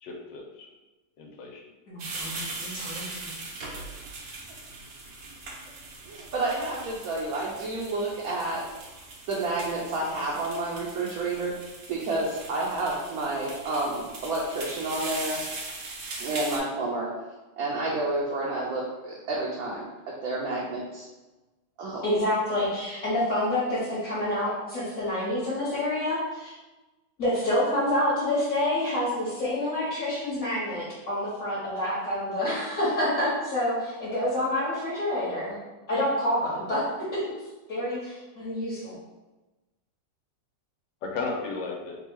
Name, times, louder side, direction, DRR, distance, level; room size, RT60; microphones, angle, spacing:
voice 1, 0.0-0.7 1.2-1.6 41.0-42.0, left 4 dB, 90° left, 0 dB, 1.4 m, -34 dB
voice 2, 1.9-3.4 22.0-26.5 27.2-35.6 35.9-37.2 37.7-38.9, left 1 dB, 50° left, -10 dB, 1.4 m, -28 dB
sound 1, 2.0-16.6, right 3 dB, 85° right, 1.5 m, -40 dB
voice 3, 6.0-8.6 9.3-11.5 11.9-15.4 16.2-17.1 17.6-19.9 20.2-21.1 21.8-22.0, right 2 dB, 65° right, -5 dB, 1.0 m, -30 dB
3.5 x 2.3 x 4.5 m, 1.1 s
omnidirectional pair, 1.9 m